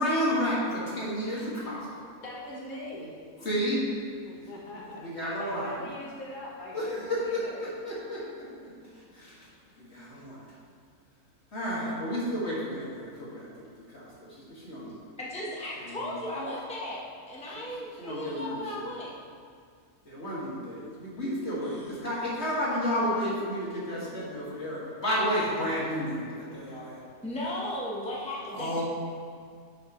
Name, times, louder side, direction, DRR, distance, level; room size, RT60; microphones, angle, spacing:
voice 1, 0.0-2.0 3.4-3.8 5.0-5.7 6.7-8.5 9.1-9.4 9.8-10.4 11.5-13.5 13.9-15.1 15.8-16.0 18.0-18.9 20.1-27.0 28.5-28.8, equal, 50° left, -7 dB, 2.5 m, -31 dB
voice 2, 2.2-3.1 4.2-5.0 5.4-7.6, left 1 dB, 75° left, -5 dB, 1.9 m, -41 dB
voice 3, 15.2-17.0 17.3-19.2 21.4-21.9 27.2-28.8, left 1 dB, 5° left, -5 dB, 1.1 m, -36 dB
10.5 x 6.5 x 3.2 m, 2.1 s
omnidirectional pair, 1.5 m